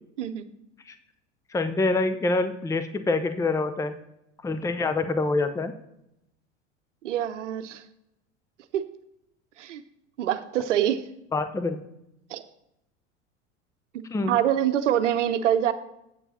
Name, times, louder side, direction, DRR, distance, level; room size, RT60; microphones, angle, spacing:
voice 1, 1.5-3.9 4.4-5.7 11.3-11.8 14.1-14.4, left 3 dB, 10° left, 10 dB, 0.6 m, -26 dB
voice 2, 7.0-7.8 8.7-8.9 9.6-9.8 10.2-11.1 12.3-12.4 13.9-15.7, right 10 dB, 80° right, 11 dB, 0.8 m, -25 dB
8.3 x 7.0 x 4.2 m, 0.83 s
hypercardioid pair, 85°, 36 cm